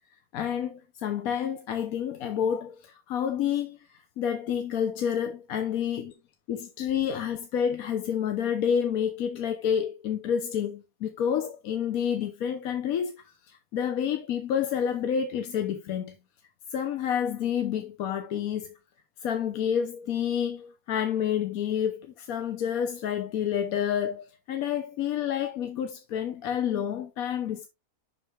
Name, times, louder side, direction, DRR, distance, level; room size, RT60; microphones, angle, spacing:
voice 1, 0.3-6.1 6.5-16.2 16.7-18.7 19.2-27.7, left 8 dB, 80° left, 1.2 m, -29 dB
7.6 x 5.9 x 3.3 m
omnidirectional pair, 1.5 m